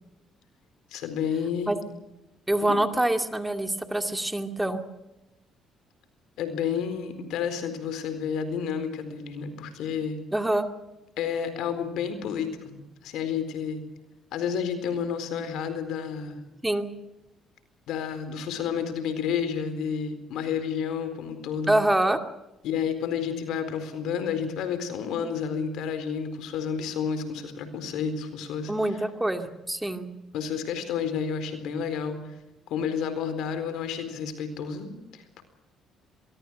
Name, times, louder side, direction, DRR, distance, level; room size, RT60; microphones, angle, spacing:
voice 1, 0.9-1.7 2.6-2.7 6.4-10.2 11.2-13.8 14.3-16.4 17.9-21.7 22.6-28.7 30.3-32.3 32.7-35.4, left 7 dB, 80° left, 10 dB, 4.2 m, -30 dB
voice 2, 2.5-4.8 10.3-10.6 16.6-16.9 21.7-22.2 28.7-30.1, right 1 dB, 10° right, 6 dB, 2.3 m, -25 dB
22.5 x 22.5 x 6.4 m, 0.96 s
supercardioid pair, 80°, 0 cm